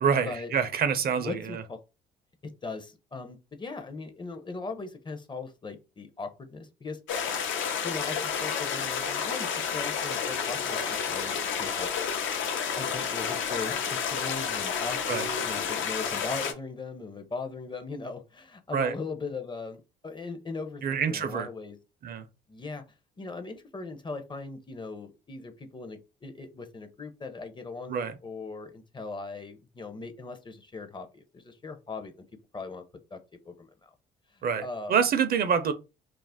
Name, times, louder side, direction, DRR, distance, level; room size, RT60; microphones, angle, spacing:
voice 1, 0.0-1.6 15.1-15.3 18.7-18.9 20.8-21.5 22.0-22.3 27.9-28.2 34.4-35.7, right 7 dB, 50° right, 0.5 m, -26 dB
voice 2, 1.2-1.8 2.4-7.0 7.8-10.8 11.1-11.3 11.6-11.9 12.8-21.8 22.5-22.8 23.2-32.1 32.5-32.8 33.1-33.2 33.4-33.9 34.3-34.9, left 3 dB, 25° left, 0.5 m, -39 dB
sound 1, 7.1-16.5, left 7 dB, 75° left, 0.6 m, -30 dB
2.4 x 2.0 x 3.4 m
cardioid pair, 80°, 20 cm